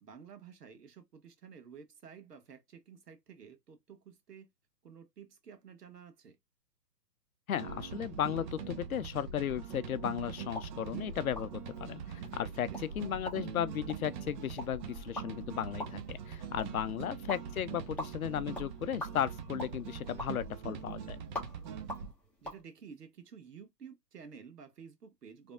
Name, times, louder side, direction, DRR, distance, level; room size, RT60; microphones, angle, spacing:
voice 1, 0.0-4.5 4.8-6.4 12.6-12.9 16.9-17.2 22.4-25.5, right 6 dB, 70° right, 1.6 m, -52 dB
voice 2, 7.5-12.7 12.9-21.2, left 10 dB, 60° left, 0.6 m, -35 dB
sound 1, 7.6-22.1, right 7 dB, 30° right, 0.8 m, -43 dB
sound 2, 10.5-22.6, left 1 dB, 5° left, 1.4 m, -47 dB
5.0 x 3.4 x 2.3 m
figure-of-eight pair, 125°, 50 cm